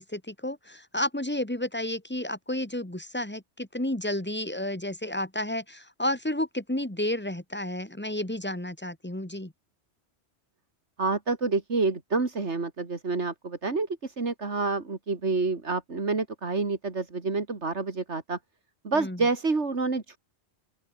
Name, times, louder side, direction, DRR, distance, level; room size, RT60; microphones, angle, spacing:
voice 1, 0.0-9.5 18.9-19.2, left 1 dB, 10° left, 2.2 m, -31 dB
voice 2, 11.0-18.4 18.8-20.2, right 3 dB, 85° right, 2.9 m, -28 dB
open air
omnidirectional pair, 1.1 m